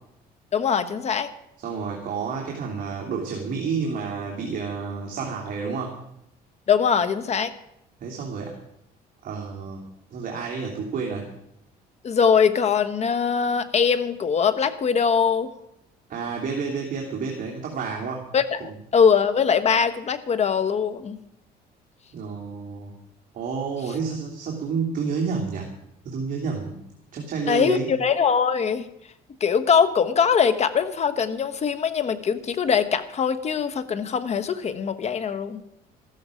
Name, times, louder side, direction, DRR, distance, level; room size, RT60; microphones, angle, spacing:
voice 1, 0.5-1.3 6.7-7.5 12.0-15.5 18.3-21.2 27.5-28.9 29.4-35.6, left 6 dB, 40° left, 12 dB, 1.3 m, -22 dB
voice 2, 1.6-5.9 8.0-8.5 9.2-9.9 10.1-11.3 16.1-18.2 22.1-22.9 23.3-25.7 26.0-26.8 27.1-27.9, right 5 dB, 55° right, -1 dB, 2.8 m, -30 dB
14.0 x 13.5 x 5.1 m, 0.79 s
cardioid pair, 110°, 17 cm